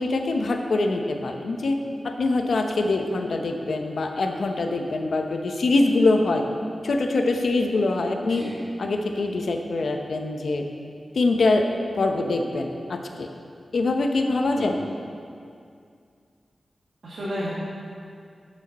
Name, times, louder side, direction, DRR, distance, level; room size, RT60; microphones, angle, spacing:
voice 1, 0.0-1.8 2.0-6.4 6.8-8.4 8.8-10.6 11.1-11.7 11.9-13.3 13.7-14.8, left 2 dB, 75° left, 4 dB, 0.8 m, -24 dB
voice 2, 17.0-17.5, equal, 70° right, -9 dB, 1.7 m, -32 dB
13.0 x 6.3 x 4.2 m, 2.3 s
wide cardioid pair, 125°, 0 cm